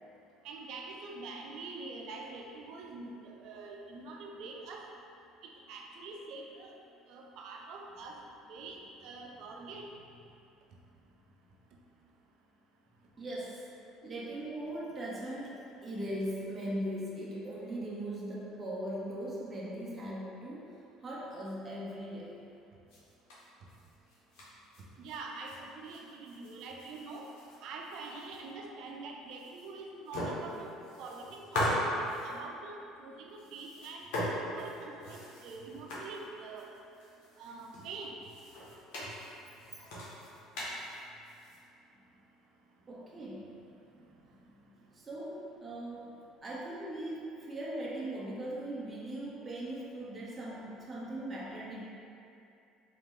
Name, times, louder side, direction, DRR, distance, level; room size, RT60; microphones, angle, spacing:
voice 1, 0.4-3.1 3.4-4.8 5.7-6.7 7.1-8.1 8.5-8.8 9.0-9.8 25.0-27.3 27.6-30.7 31.0-31.9 32.2-34.1 34.5-36.7 37.4-38.1, right 3 dB, 65° right, 0 dB, 0.6 m, -45 dB
voice 2, 13.2-13.6 14.0-20.7 21.0-22.4 42.8-51.8, right 1 dB, 20° right, -6 dB, 0.7 m, -40 dB
sound 1, 22.9-25.6 25.8-28.5 28.9-29.0 29.3-29.8 30.0-32.4 33.3-41.6, equal, 80° left, 1.2 m, -39 dB
4.0 x 2.8 x 3.7 m, 2.6 s
cardioid pair, 115°, 0 cm